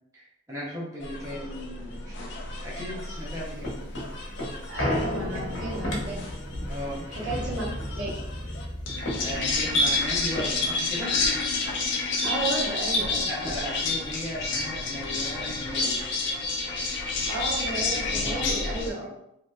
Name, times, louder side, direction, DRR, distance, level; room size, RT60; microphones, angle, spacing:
voice 1, 0.1-2.4 2.6-3.8 6.7-7.4 9.2-11.1 13.3-16.0 18.1-18.6 19.0-19.1, equal, 15° right, -6 dB, 0.7 m, -37 dB
sound 1, 1.0-18.9, left 3 dB, 65° left, 0.5 m, -30 dB
sound 2, 3.2-11.9 12.2-12.3 12.6-14.0 14.4-14.5, left 1 dB, 85° left, 1.0 m, -34 dB
voice 2, 4.7-6.2 7.1-7.6 7.9-8.1 12.2-13.3 17.0-19.0, right 2 dB, 65° right, -6 dB, 1.0 m, -33 dB
3.1 x 2.7 x 2.3 m, 0.80 s
head